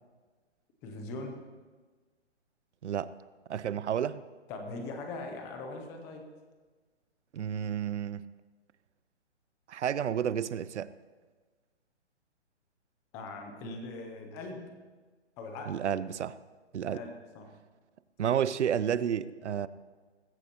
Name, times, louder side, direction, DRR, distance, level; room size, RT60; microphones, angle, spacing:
voice 1, 0.8-1.4 4.5-6.3 13.1-14.7 15.4-15.8 16.8-17.5, left 2 dB, 10° left, 4 dB, 0.5 m, -41 dB
voice 2, 3.5-4.2 7.3-8.3 9.7-10.9 15.7-16.4 16.7-17.0 18.2-19.7, right 9 dB, 75° right, 17 dB, 0.7 m, -31 dB
21.0 x 15.0 x 2.9 m, 1.4 s
hypercardioid pair, 160°, 35 cm